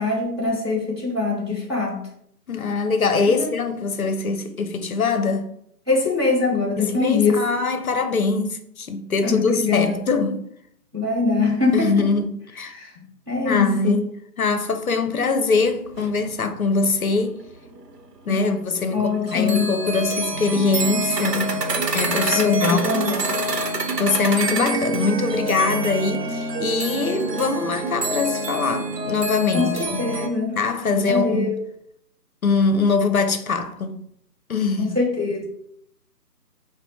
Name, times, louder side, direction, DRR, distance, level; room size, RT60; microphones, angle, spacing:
voice 1, 0.0-2.0 3.3-3.5 5.9-7.4 9.2-10.0 10.9-12.1 12.7-12.9 13.3-14.0 18.3-18.5 18.9-19.7 22.3-23.2 29.5-30.6 30.9-31.5 34.8-35.5, left 4 dB, 20° right, 0.7 m, -23 dB
voice 2, 2.5-5.5 6.8-10.4 11.7-12.7 13.4-14.0 14.4-17.4 18.3-21.5 21.9-23.0 24.0-30.1 30.6-31.6 32.4-34.0 34.5-35.0, left 4 dB, 60° left, 0.6 m, -23 dB
sound 1, 15.7-15.8 15.9-18.0 18.3-18.4 18.8-18.9 19.3-30.3, right 1 dB, 80° right, 0.8 m, -26 dB
5.5 x 2.1 x 4.2 m
figure-of-eight pair, 150°, 48 cm